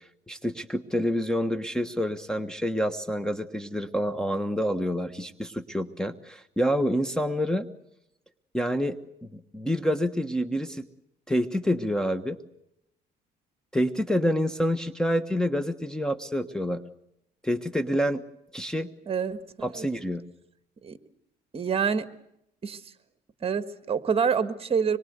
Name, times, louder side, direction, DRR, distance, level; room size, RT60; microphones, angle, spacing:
voice 1, 0.3-7.7 8.5-9.0 9.3-10.8 11.3-12.4 13.7-16.8 17.4-18.2 18.5-18.9 19.6-20.2, equal, 5° left, 12 dB, 1.3 m, -27 dB
voice 2, 19.1-19.9 20.8-21.0 21.5-22.1 22.6-22.9 23.4-25.0, right 6 dB, 35° right, 11 dB, 1.7 m, -27 dB
25.5 x 23.0 x 8.1 m, 0.79 s
cardioid pair, 110°, 17 cm